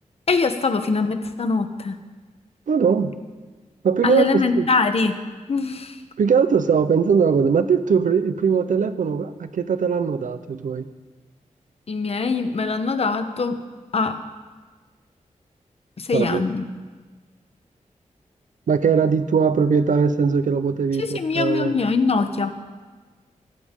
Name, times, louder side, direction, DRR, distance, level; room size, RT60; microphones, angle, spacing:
voice 1, 0.3-1.9 4.0-5.2 5.5-6.0 11.9-13.6 13.9-14.2 16.0-16.6 21.0-22.5, left 4 dB, 50° left, 8 dB, 1.1 m, -22 dB
voice 2, 2.7-3.1 3.8-4.7 6.2-10.9 16.1-16.5 18.7-21.7, right 6 dB, 80° right, 11 dB, 0.8 m, -20 dB
25.0 x 14.5 x 3.8 m, 1.4 s
wide cardioid pair, 180°, 13 cm